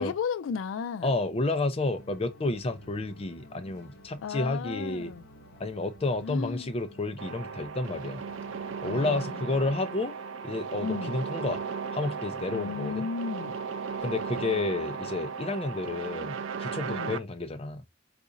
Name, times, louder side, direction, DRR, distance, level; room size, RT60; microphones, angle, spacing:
voice 1, 0.0-1.1 4.2-5.2 6.2-6.7 8.7-9.7 10.8-11.2 12.5-13.6 16.9-17.2, left 6 dB, 85° left, 0.3 m, -34 dB
voice 2, 1.0-5.1 5.6-8.2 8.8-10.1 10.4-11.6 11.9-13.1 14.0-16.3 16.6-17.8, left 2 dB, 30° left, 0.5 m, -30 dB
sound 1, 1.9-8.9, equal, 60° left, 0.9 m, -52 dB
sound 2, 7.2-17.2, right 5 dB, 80° right, 0.4 m, -36 dB
3.9 x 2.5 x 2.5 m
head